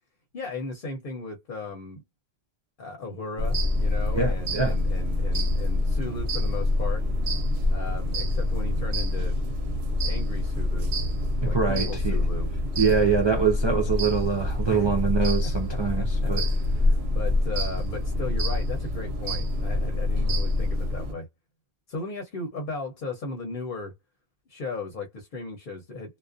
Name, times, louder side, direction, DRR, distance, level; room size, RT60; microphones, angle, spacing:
voice 1, 0.3-2.0 2.8-7.0 7.7-9.4 9.7-9.8 10.0-10.9 11.4-12.5 14.7-14.9 15.4-21.3 21.9-23.9 24.5-26.2, left 3 dB, 55° left, 0.8 m, -36 dB
sound 1, 3.4-21.1, left 1 dB, 75° right, 0.9 m, -26 dB
voice 2, 4.1-4.8 11.4-12.2 12.8-16.4, right 5 dB, 45° right, 0.3 m, -24 dB
2.4 x 2.1 x 2.4 m
omnidirectional pair, 1.1 m